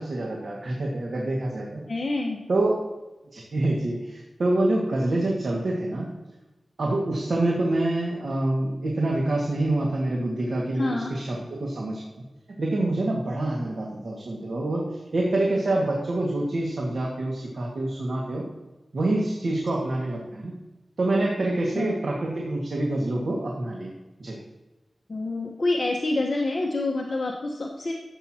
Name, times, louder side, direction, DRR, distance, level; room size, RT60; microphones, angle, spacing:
voice 1, 0.0-1.8 2.5-2.8 3.3-6.1 6.8-12.0 12.6-18.5 18.9-20.5 21.0-23.9 24.2-24.4, right 2 dB, 70° right, -2 dB, 1.9 m, -26 dB
voice 2, 1.9-2.4 10.7-11.1 21.7-21.9 25.1-27.9, left 2 dB, 50° left, -1 dB, 1.2 m, -27 dB
14.5 x 8.2 x 2.9 m, 1.1 s
wide cardioid pair, 80°, 0 cm